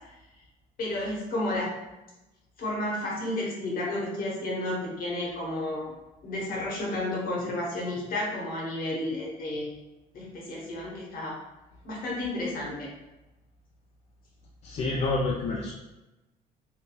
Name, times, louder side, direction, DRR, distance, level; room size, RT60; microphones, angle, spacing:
voice 1, 0.8-1.8 2.6-5.9 6.2-9.7 10.1-11.4 11.8-12.9, left 1 dB, 60° left, -3 dB, 1.0 m, -32 dB
voice 2, 14.6-15.7, left 3 dB, 40° left, -2 dB, 0.4 m, -28 dB
3.2 x 2.2 x 2.2 m, 1.0 s
cardioid pair, 110°, 17 cm